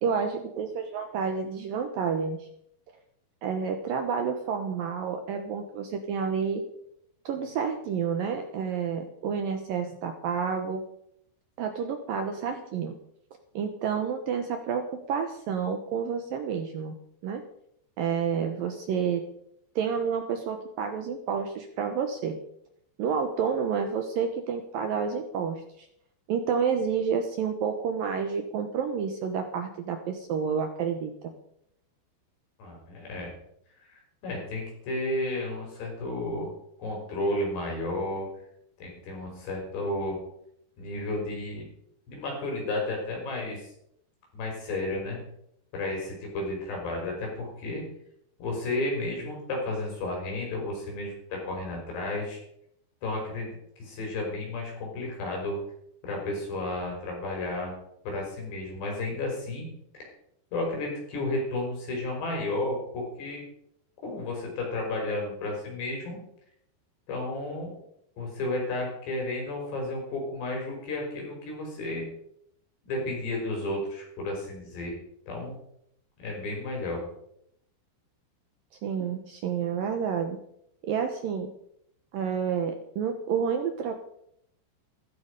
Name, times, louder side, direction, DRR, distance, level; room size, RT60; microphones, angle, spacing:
voice 1, 0.0-2.5 3.4-6.6 7.3-10.8 11.6-12.9 13.5-17.0 17.2-17.4 18.0-19.3 19.8-22.4 23.0-25.9 26.3-31.3 78.8-80.4 80.8-81.5 82.1-83.9, right 6 dB, 70° right, 6 dB, 2.3 m, -29 dB
voice 2, 32.6-33.3 33.8-36.5 36.8-38.3 38.8-40.2 40.8-41.7 42.1-43.7 44.3-45.2 45.7-47.8 48.4-52.4 53.0-55.6 56.0-57.7 58.0-59.7 60.5-63.4 64.0-66.2 67.1-67.8 68.2-72.1 72.8-75.0 75.3-75.5 76.2-77.0, left 2 dB, 65° left, -1 dB, 7.6 m, -32 dB
15.5 x 14.0 x 5.3 m, 0.75 s
omnidirectional pair, 5.1 m